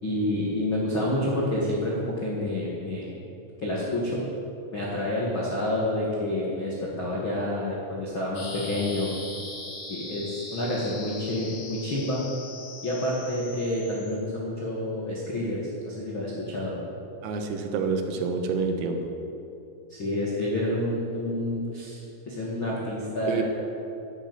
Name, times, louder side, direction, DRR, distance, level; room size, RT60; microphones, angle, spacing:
voice 1, 0.0-3.1 3.6-4.2 4.7-9.1 9.8-12.2 12.8-16.8 19.9-23.4, left 1 dB, 75° left, -5 dB, 1.1 m, -29 dB
sound 1, 8.3-14.1, left 2 dB, 30° left, 2.8 m, -40 dB
voice 2, 17.2-19.0 23.3-23.4, right 5 dB, 90° right, 4 dB, 4.0 m, -27 dB
11.5 x 11.0 x 8.1 m, 2.8 s
omnidirectional pair, 6.0 m